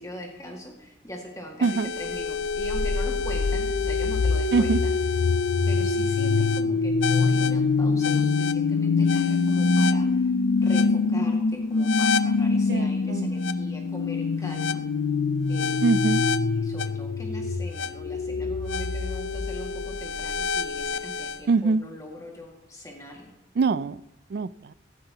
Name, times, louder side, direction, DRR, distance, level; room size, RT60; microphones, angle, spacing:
voice 1, 0.0-4.9 5.7-10.3 10.6-14.8 15.5-15.8 16.5-23.2, left 1 dB, 20° left, 1 dB, 1.9 m, -41 dB
sound 1, 1.6-21.4, left 4 dB, 70° left, 0.4 m, -24 dB
voice 2, 1.6-1.9 4.5-4.8 12.7-13.3 15.8-16.2 21.5-21.8 23.6-24.0 24.3-24.7, right 4 dB, 55° right, 19 dB, 0.3 m, -23 dB
16.5 x 9.5 x 2.9 m, 1.0 s
head